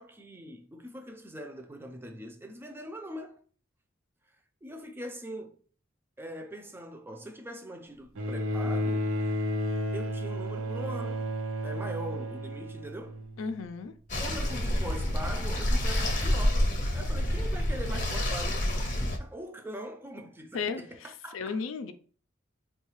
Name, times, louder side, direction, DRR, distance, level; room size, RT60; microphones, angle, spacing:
voice 1, 0.0-3.4 4.6-5.6 6.2-9.1 9.9-11.3 11.6-13.2 14.2-16.6 16.9-21.6, equal, 10° right, 0.3 m, -42 dB
Bowed string instrument, 8.2-13.6 14.7-14.8, equal, 80° right, 0.5 m, -32 dB
voice 2, 13.4-13.9 20.5-21.9, left 5 dB, 90° left, 0.4 m, -35 dB
sound 1, 14.1-19.2, left 1 dB, 45° left, 0.7 m, -28 dB
3.6 x 2.3 x 3.0 m
head